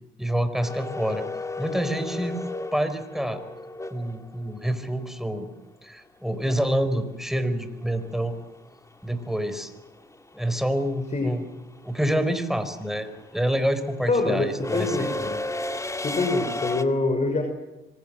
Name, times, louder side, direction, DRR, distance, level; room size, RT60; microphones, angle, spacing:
voice 1, 0.2-1.2 1.6-2.4 2.7-3.4 3.9-5.5 5.8-8.4 9.0-9.7 10.3-11.4 11.8-15.1, equal, ahead, 10 dB, 4.6 m, -27 dB
sound 1, 0.6-4.7 7.1-7.2 8.5-8.8 9.1-16.8, left 2 dB, 15° left, 2.1 m, -34 dB
voice 2, 14.1-15.3 16.0-17.4, left 3 dB, 35° left, 5 dB, 6.1 m, -25 dB
26.5 x 24.5 x 7.6 m, 1.0 s
cardioid pair, 90°, 20 cm